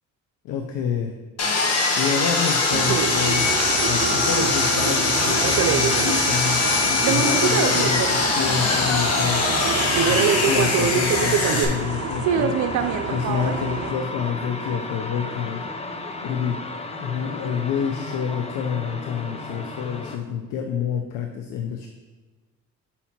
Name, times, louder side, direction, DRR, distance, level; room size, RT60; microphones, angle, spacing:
voice 1, 0.4-1.1 2.0-3.5 3.8-9.5 10.0-15.6 16.2-16.6 17.0-21.9, left 7 dB, 90° left, 4 dB, 0.6 m, -28 dB
Sawing, 1.4-11.6, left 3 dB, 55° left, 1.3 m, -22 dB
sound 1, 2.7-13.9, right 8 dB, 75° right, 0.6 m, -26 dB
sound 2, 3.4-20.2, left 2 dB, 20° left, 0.6 m, -34 dB
5.5 x 4.3 x 5.8 m, 1.3 s
cardioid pair, 90°, 30 cm